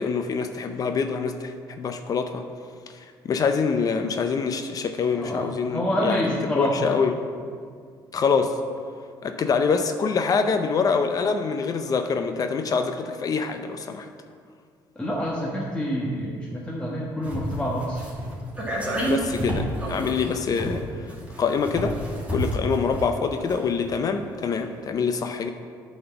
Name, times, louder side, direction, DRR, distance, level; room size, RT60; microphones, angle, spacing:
voice 1, 0.0-2.4 3.2-6.2 6.6-7.1 8.1-8.5 9.2-14.1 19.1-21.1 21.4-22.0 22.3-25.5, left 5 dB, 45° left, 7 dB, 0.5 m, -25 dB
voice 2, 5.1-6.9 14.9-18.1, equal, 15° left, -5 dB, 1.2 m, -27 dB
sound 1, 17.2-24.0 24.2-24.3, right 1 dB, 15° right, 2.2 m, -30 dB
8.6 x 4.3 x 6.9 m, 2.1 s
cardioid pair, 90°, 9 cm